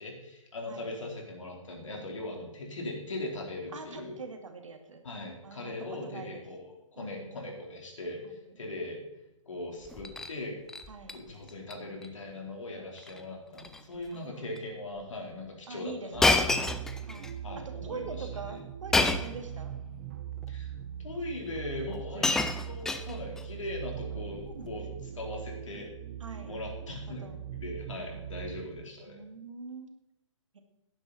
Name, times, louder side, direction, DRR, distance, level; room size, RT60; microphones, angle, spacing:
voice 1, 0.0-4.2 5.0-9.0 9.5-10.5 11.1-16.7 17.4-18.6 20.5-20.7 21.0-22.3 22.7-25.9 26.5-29.2, left 2 dB, 70° left, 0 dB, 4.1 m, -40 dB
voice 2, 3.7-5.0 5.4-6.4 7.0-7.4 10.9-11.1 14.1-14.4 15.7-16.3 17.1-17.4 17.8-19.8 22.1-22.3 23.1-23.2 24.4-25.2 26.2-26.5 27.2-27.4 29.1-29.9 30.5-30.6, right 4 dB, 70° right, 6 dB, 2.1 m, -44 dB
Shatter, 9.8-10.3 10.7-11.2 11.5-11.7 12.0-12.1 13.0-13.2 13.5-13.8 14.6-14.7 16.2-17.3 18.9-19.4 20.4-20.5 21.6-21.7 21.9-23.4 24.4-24.7, left 3 dB, 5° left, 0.3 m, -28 dB
sound 1, 16.1-28.8, right 9 dB, 35° right, 1.0 m, -41 dB
12.0 x 10.5 x 4.4 m, 0.92 s
figure-of-eight pair, 130°, 17 cm